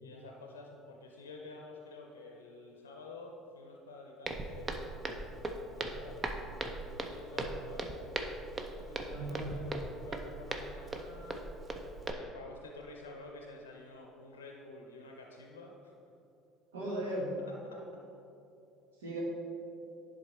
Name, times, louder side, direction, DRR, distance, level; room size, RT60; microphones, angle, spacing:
voice 1, 0.0-4.7 5.7-6.3 6.5-8.1 8.7-11.4 12.0-15.9 17.6-17.8, left 3 dB, 90° left, 1 dB, 0.6 m, -50 dB
Walk footsteps, 4.3-12.1, right 2 dB, 35° right, 0.7 m, -39 dB
voice 2, 9.1-9.6 16.7-17.3 19.0-19.2, right 1 dB, 85° right, -3 dB, 1.5 m, -37 dB
10.0 x 3.6 x 4.3 m, 2.7 s
hypercardioid pair, 65°, 0 cm